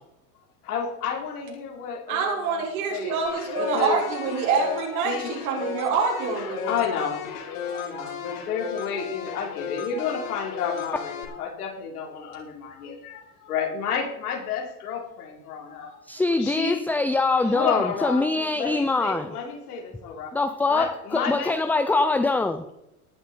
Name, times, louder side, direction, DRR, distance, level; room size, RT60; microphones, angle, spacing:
voice 1, 0.6-2.6 2.9-3.2 3.6-4.0 5.0-5.4 6.4-16.0 16.4-16.8 17.4-20.3 20.7-21.6, left 6 dB, 80° left, 0 dB, 4.6 m, -31 dB
voice 2, 2.1-6.8, right 5 dB, 70° right, -2 dB, 5.7 m, -26 dB
sound 1, 3.3-11.3, left 7 dB, 60° left, 4.4 m, -35 dB
voice 3, 16.1-19.3 20.3-22.6, left 3 dB, 5° left, 8 dB, 0.5 m, -23 dB
18.5 x 7.6 x 5.3 m, 0.85 s
hypercardioid pair, 120°, 44 cm